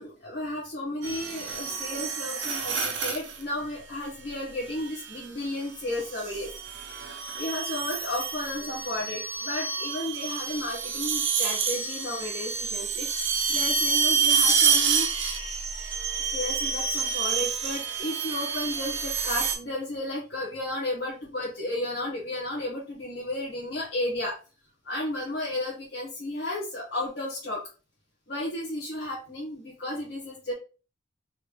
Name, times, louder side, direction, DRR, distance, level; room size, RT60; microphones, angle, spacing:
voice 1, 0.0-6.5 6.8-15.1 16.3-24.4 24.8-27.7 28.3-30.5, left 1 dB, 60° left, -7 dB, 1.4 m, -33 dB
sound 1, 1.0-3.4 4.8-5.2 6.0-19.6, right 6 dB, 80° right, 0.7 m, -28 dB
4.2 x 3.1 x 2.5 m, 0.34 s
head